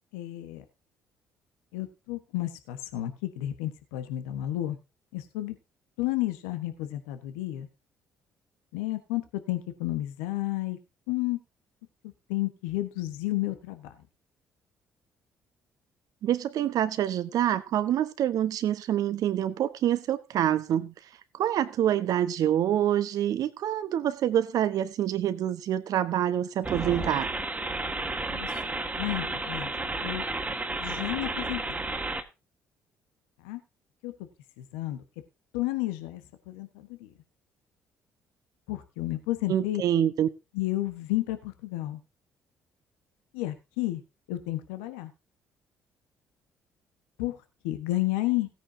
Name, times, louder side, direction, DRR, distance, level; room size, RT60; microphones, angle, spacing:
voice 1, 0.1-0.6 1.7-4.8 5.1-5.5 6.0-7.7 8.7-10.8 11.1-11.4 12.3-13.9 28.3-28.5 29.0-29.7 30.0-30.2 30.8-31.6 33.4-33.6 34.0-34.1 34.6-35.0 35.5-37.1 38.7-39.8 40.5-42.0 43.3-44.0 44.3-45.1 47.2-47.4 47.6-48.5, left 16 dB, 75° left, 1.3 m, -31 dB
voice 2, 16.2-20.9 21.4-27.3 39.5-40.3, right 11 dB, 60° right, 1.2 m, -26 dB
sound 1, 26.6-32.2, right 2 dB, 20° right, 2.0 m, -32 dB
16.5 x 9.5 x 2.8 m
hypercardioid pair, 50°, 7 cm